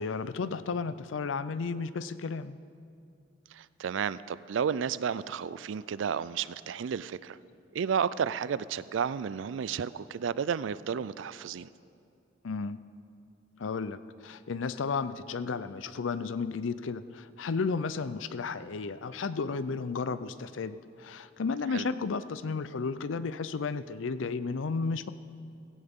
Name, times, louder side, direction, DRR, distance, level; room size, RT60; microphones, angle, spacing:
voice 1, 0.0-2.6 12.4-12.8 13.6-25.1, left 4 dB, 80° left, 14 dB, 0.5 m, -33 dB
voice 2, 3.5-7.4 7.7-11.7 21.7-21.9, right 7 dB, 75° right, 17 dB, 0.4 m, -32 dB
16.5 x 16.0 x 3.7 m, 2.5 s
head